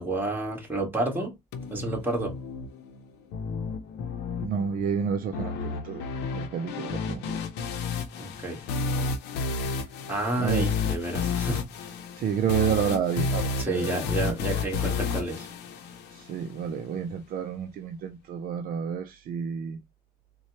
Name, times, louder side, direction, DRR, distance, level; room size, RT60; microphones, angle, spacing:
voice 1, 0.0-1.3 1.7-2.3 8.2-8.6 10.1-11.6 13.6-15.5, right 2 dB, 10° right, 1.9 m, -30 dB
sound 1, 1.5-16.5, left 4 dB, 85° left, 0.7 m, -31 dB
voice 2, 4.4-6.1 6.3-7.4 10.4-10.7 12.2-13.9 14.2-14.3 16.3-19.8, right 7 dB, 60° right, 0.5 m, -30 dB
4.2 x 2.3 x 2.9 m
cardioid pair, 110°, 17 cm